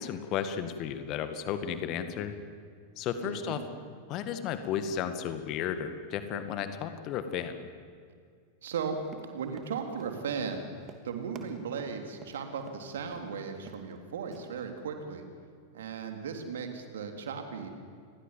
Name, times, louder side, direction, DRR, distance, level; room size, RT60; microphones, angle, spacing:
voice 1, 0.0-2.4 3.0-3.6 4.1-7.6, left 8 dB, 40° left, 9 dB, 2.1 m, -33 dB
voice 2, 3.2-3.6 8.6-9.0 9.2-10.6 11.0-15.2 15.7-17.7, right 6 dB, 60° right, 5 dB, 3.4 m, -36 dB
Run, 9.0-12.8 13.1-13.3 13.6-14.0 14.3-14.4, right 6 dB, 30° right, 2.9 m, -50 dB
29.0 x 22.0 x 7.6 m, 2.3 s
figure-of-eight pair, 90°, 0 cm